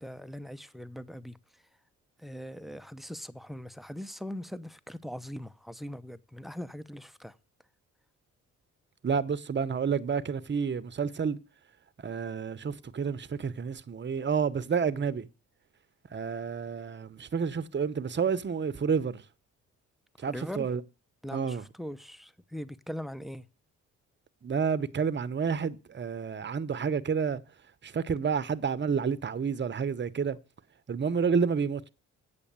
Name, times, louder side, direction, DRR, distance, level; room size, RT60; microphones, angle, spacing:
voice 1, 0.0-1.4 2.2-7.3 20.3-20.7 21.2-23.4, equal, ahead, 0.8 m, -41 dB
voice 2, 9.0-11.4 12.0-15.3 16.1-19.2 20.2-20.8 21.3-21.6 24.4-27.4 27.8-30.4 30.9-31.9, right 6 dB, 35° right, 1.0 m, -29 dB
8.5 x 6.9 x 6.8 m
supercardioid pair, 60°, 33 cm